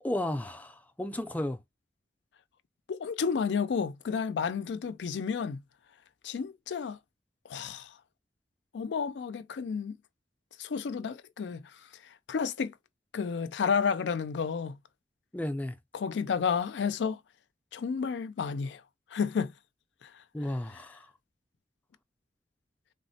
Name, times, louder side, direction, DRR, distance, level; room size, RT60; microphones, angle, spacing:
voice 1, 0.0-1.6 15.3-15.7 20.3-21.0, left 1 dB, 10° left, 0.4 m, -33 dB
voice 2, 2.9-5.6 6.2-7.0 7.5-7.9 8.7-10.0 10.6-11.6 12.3-12.7 13.1-14.8 15.9-17.2 17.7-18.8 19.1-19.5 20.0-20.1, left 6 dB, 90° left, 0.4 m, -31 dB
3.5 x 2.1 x 2.6 m
head